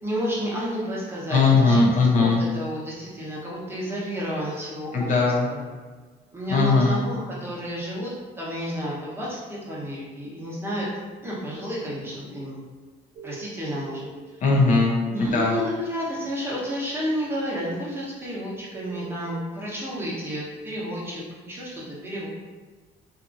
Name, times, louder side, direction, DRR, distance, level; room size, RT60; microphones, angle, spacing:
voice 1, 0.0-5.2 5.5-5.6 6.3-8.1 8.4-10.9 11.2-12.6 13.2-14.2 15.1-22.3, equal, 15° right, -6 dB, 0.8 m, -31 dB
voice 2, 1.3-2.4 4.9-5.5 6.5-7.0 14.4-15.6, left 3 dB, 50° left, -2 dB, 0.5 m, -19 dB
sound 1, 13.2-14.1 15.2-15.3 18.7-19.1, right 5 dB, 55° right, 0.4 m, -40 dB
2.7 x 2.5 x 2.4 m, 1.4 s
cardioid pair, 110°, 17 cm